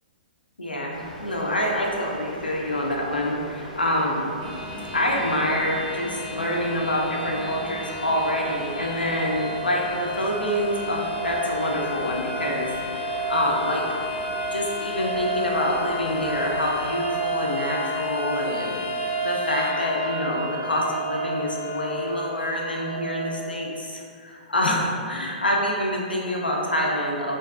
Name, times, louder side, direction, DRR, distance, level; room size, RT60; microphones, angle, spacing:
voice 1, 0.6-4.3 4.9-12.7 13.0-13.8 14.5-27.4, left 1 dB, 90° left, -2 dB, 0.4 m, -26 dB
sound 1, 0.9-16.9, left 1 dB, ahead, 0.6 m, -41 dB
sound 2, 4.4-23.3, right 1 dB, 45° right, 0.6 m, -31 dB
2.5 x 2.4 x 2.3 m, 2.3 s
figure-of-eight pair, 115°, 5 cm